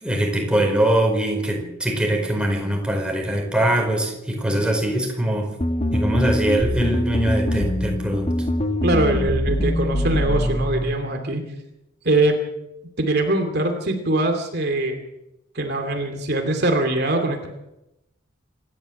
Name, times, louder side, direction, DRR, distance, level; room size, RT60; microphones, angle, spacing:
voice 1, 0.0-5.5 5.9-8.3, right 1 dB, 5° right, 2 dB, 4.8 m, -22 dB
sound 1, 5.6-10.9, left 1 dB, 30° left, 1.5 m, -23 dB
voice 2, 8.8-11.5 12.0-12.4 13.0-15.0 15.5-17.5, right 2 dB, 50° right, 4 dB, 2.7 m, -22 dB
27.0 x 13.0 x 7.8 m, 0.92 s
head